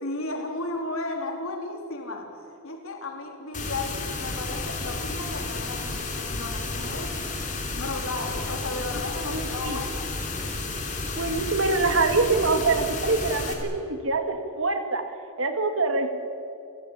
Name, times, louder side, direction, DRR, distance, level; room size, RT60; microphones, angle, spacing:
voice 1, 0.0-7.2 7.7-10.1, left 2 dB, 70° left, 3 dB, 3.7 m, -34 dB
sound 1, 3.5-13.5, left 3 dB, 35° left, 3.9 m, -32 dB
voice 2, 9.2-9.8 11.1-15.0 15.4-16.2, right 3 dB, 65° right, 6 dB, 2.4 m, -25 dB
30.0 x 18.0 x 8.7 m, 2.5 s
head